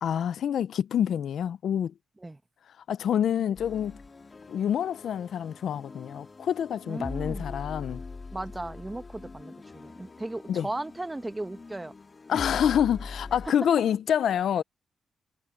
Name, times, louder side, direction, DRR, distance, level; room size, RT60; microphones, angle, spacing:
voice 1, 0.0-1.9 2.9-4.0 4.5-8.0 10.5-10.7 12.3-14.6, left 9 dB, 75° left, 0.4 m, -27 dB
sound 1, 3.5-13.5, left 3 dB, 30° left, 2.0 m, -42 dB
voice 2, 6.9-7.5 8.3-11.9 13.4-13.5, right 2 dB, 15° right, 0.9 m, -36 dB
wide cardioid pair, 135°, 0 cm